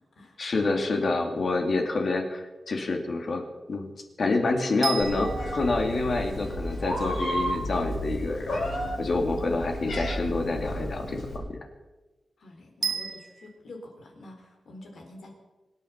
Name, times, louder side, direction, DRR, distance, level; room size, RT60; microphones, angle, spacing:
voice 1, 0.4-3.4 3.7-3.9 4.2-8.6 9.0-11.6, left 3 dB, 50° left, 3 dB, 2.6 m, -27 dB
sound 1, 4.8-7.0 12.8-13.6, right 5 dB, 60° right, 1.5 m, -35 dB
Meow, 5.0-11.4, equal, 90° left, 7.0 m, -32 dB
voice 2, 12.4-15.3, left 2 dB, 70° left, 3 dB, 4.1 m, -46 dB
25.5 x 9.8 x 5.8 m, 1.1 s
wide cardioid pair, 130°, 0 cm